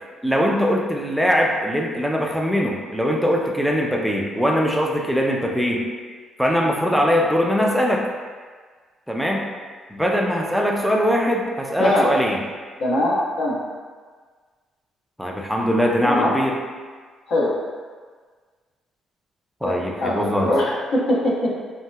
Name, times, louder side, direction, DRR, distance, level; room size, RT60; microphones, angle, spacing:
voice 1, 0.2-5.9 6.4-8.0 9.1-9.5 9.9-12.4 15.2-16.6 19.6-20.5, equal, ahead, -1 dB, 0.3 m, -21 dB
voice 2, 12.8-13.6 16.0-16.4 17.3-17.6 19.6-21.5, left 1 dB, 65° left, -4 dB, 0.6 m, -22 dB
3.1 x 2.7 x 2.2 m, 1.5 s
cardioid pair, 150°, 0 cm